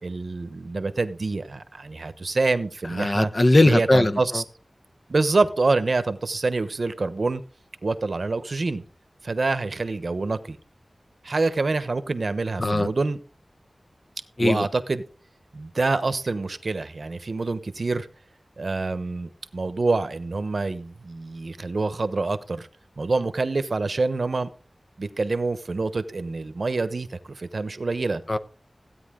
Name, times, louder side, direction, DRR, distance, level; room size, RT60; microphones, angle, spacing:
voice 1, 0.0-3.3 3.6-4.4 5.1-7.4 7.8-8.8 9.2-10.6 11.2-13.2 14.4-15.0 15.5-18.1 18.6-22.7 23.0-24.5 25.0-28.2, right 3 dB, 70° right, 1.0 m, -26 dB
voice 2, 2.9-4.4 12.6-12.9 14.4-14.7 28.3-28.4, left 2 dB, 40° left, 0.9 m, -20 dB
16.0 x 9.3 x 3.8 m
wide cardioid pair, 75°, 0 cm